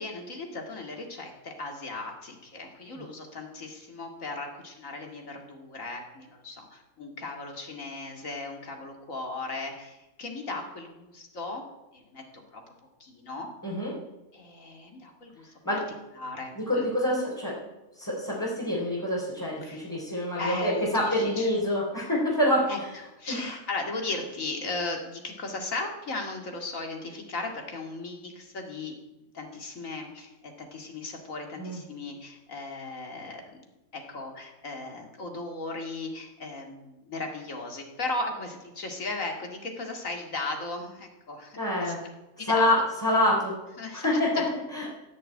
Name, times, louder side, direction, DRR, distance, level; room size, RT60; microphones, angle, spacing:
voice 1, 0.0-11.6 11.9-12.6 13.0-13.5 14.3-15.5 16.2-16.9 19.6-19.8 20.3-21.5 22.7-22.8 23.2-33.4 33.9-41.9 42.4-42.9 43.8-44.5, left 3 dB, 55° left, 2 dB, 2.6 m, -37 dB
voice 2, 13.6-13.9 15.6-15.8 16.6-17.6 18.0-22.7 23.3-23.5 31.6-31.8 41.6-42.0 42.4-43.5 43.9-44.4 44.7-44.8, left 1 dB, 10° left, -7 dB, 3.7 m, -26 dB
15.5 x 6.9 x 8.8 m, 1.0 s
omnidirectional pair, 1.7 m